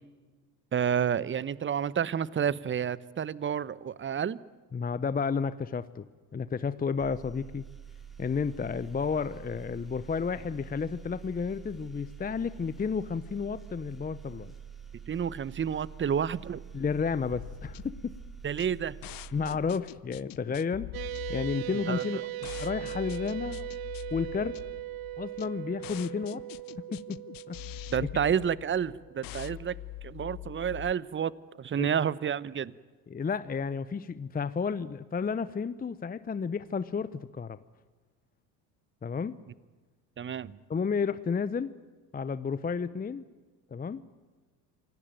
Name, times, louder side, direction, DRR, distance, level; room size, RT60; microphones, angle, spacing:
voice 1, 0.7-4.4 15.1-16.6 18.4-19.0 21.9-22.2 27.9-29.8 30.0-31.3 31.6-32.7 40.2-40.6, right 8 dB, 25° right, 20 dB, 0.9 m, -30 dB
voice 2, 4.7-6.0 6.3-7.6 8.2-14.5 16.7-18.1 19.3-20.9 21.3-22.2 22.6-23.7 24.1-24.6 25.2-26.4 26.8-27.6 31.8-31.9 33.1-37.6 39.0-39.4 40.7-41.7 42.1-43.2 43.7-44.0, left 5 dB, 20° left, 15 dB, 0.8 m, -32 dB
sound 1, 7.0-20.4, right 7 dB, ahead, 5.1 m, -47 dB
sound 2, 17.3-30.9, left 16 dB, 45° left, 0.7 m, -44 dB
sound 3, 20.9-29.6, right 17 dB, 45° right, 1.2 m, -40 dB
26.5 x 18.5 x 9.2 m, 1.3 s
hypercardioid pair, 75°, 50 cm